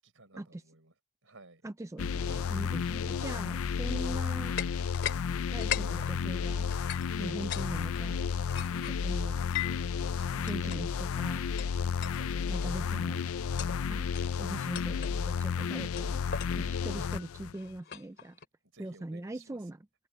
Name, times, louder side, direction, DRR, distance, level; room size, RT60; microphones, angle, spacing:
voice 1, 0.0-0.9 1.2-1.6 2.7-3.0 7.1-7.7 10.0-10.9 12.0-12.9 16.5-16.8 18.7-19.7, right 3 dB, 60° right, 6.8 m, -55 dB
voice 2, 1.6-4.6 5.5-6.7 7.2-8.2 8.8-9.4 10.4-11.7 12.5-13.2 13.9-14.1 14.4-16.2 16.6-18.4 18.8-19.8, right 1 dB, 15° right, 0.4 m, -41 dB
sound 1, 2.0-17.5, left 6 dB, 70° left, 0.4 m, -32 dB
sound 2, 4.6-5.2 5.5-7.7 7.9-9.9 10.5-10.8 11.6-11.7 12.0-12.2 12.5-12.8 13.4-13.8 14.1-14.3 14.7-15.2 16.0-18.5, left 10 dB, 50° left, 2.7 m, -39 dB
head